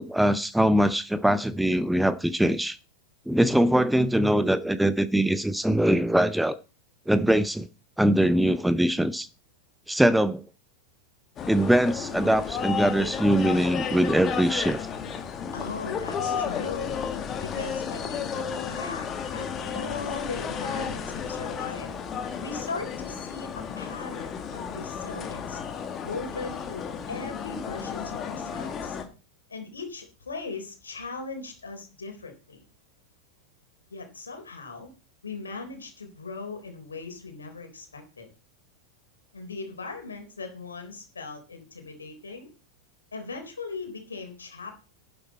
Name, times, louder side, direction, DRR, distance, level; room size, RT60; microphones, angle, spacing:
voice 1, 0.0-2.8 3.3-6.6 7.1-7.7 8.0-9.3 9.9-10.4 11.5-14.9, right 1 dB, 5° right, 0.6 m, -22 dB
sound 1, 11.4-29.0, left 7 dB, 25° left, 2.0 m, -33 dB
voice 2, 15.5-17.0 17.4-19.1 19.3-19.5 19.7-21.9 22.4-25.6 26.0-29.0 29.5-32.6 33.9-34.9 35.2-38.3 39.3-42.5 43.1-44.8, left 4 dB, 75° left, 3.8 m, -38 dB
11.5 x 10.5 x 4.2 m
figure-of-eight pair, 90°, 0 cm